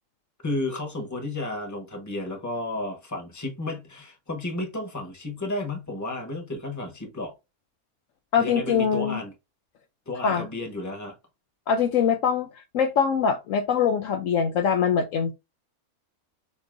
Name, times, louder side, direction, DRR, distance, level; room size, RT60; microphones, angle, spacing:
voice 1, 0.4-7.3 8.4-9.3 10.1-11.1, left 2 dB, 15° left, 1.0 m, -32 dB
voice 2, 8.3-9.2 10.2-10.5 11.7-15.3, left 7 dB, 65° left, 0.9 m, -23 dB
6.8 x 2.7 x 2.6 m
omnidirectional pair, 1.6 m